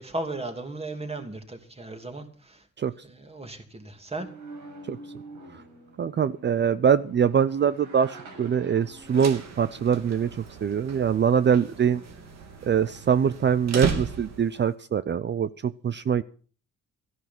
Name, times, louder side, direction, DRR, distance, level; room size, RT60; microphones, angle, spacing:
voice 1, 0.0-2.7 3.0-4.3, right 2 dB, 20° right, 5 dB, 2.9 m, -36 dB
sound 1, 4.2-13.7, right 2 dB, 80° right, 6.1 m, -48 dB
voice 2, 6.0-12.0 12.7-16.2, right 7 dB, 35° right, 15 dB, 0.6 m, -23 dB
sound 2, 8.9-14.7, right 6 dB, 60° right, 2.8 m, -35 dB
14.0 x 11.0 x 6.0 m, 0.41 s
cardioid pair, 90°, 30 cm